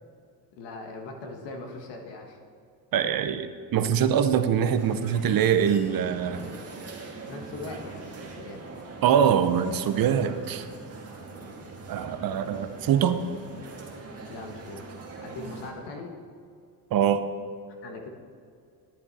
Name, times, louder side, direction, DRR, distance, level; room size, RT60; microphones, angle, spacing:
voice 1, 0.5-2.4 7.3-8.6 14.3-14.9 15.2-16.2 17.8-18.1, left 3 dB, 80° left, 3 dB, 1.5 m, -40 dB
voice 2, 2.9-6.5 9.0-10.7 11.9-13.2 16.9-17.2, right 8 dB, 55° right, 10 dB, 0.7 m, -23 dB
sound 1, 4.7-15.7, right 3 dB, 35° right, 1.6 m, -42 dB
10.5 x 8.4 x 4.1 m, 2.3 s
cardioid pair, 105°, 41 cm